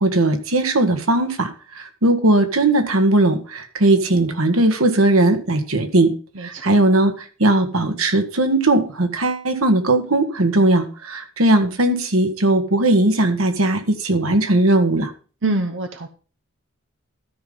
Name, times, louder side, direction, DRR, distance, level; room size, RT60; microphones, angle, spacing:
voice 1, 0.0-1.5 2.0-6.1 6.4-7.1 7.4-15.1, right 2 dB, 85° right, 7 dB, 1.7 m, -18 dB
voice 2, 6.4-6.7 15.4-16.1, right 2 dB, 60° right, 7 dB, 0.9 m, -25 dB
13.0 x 5.5 x 5.4 m, 0.37 s
head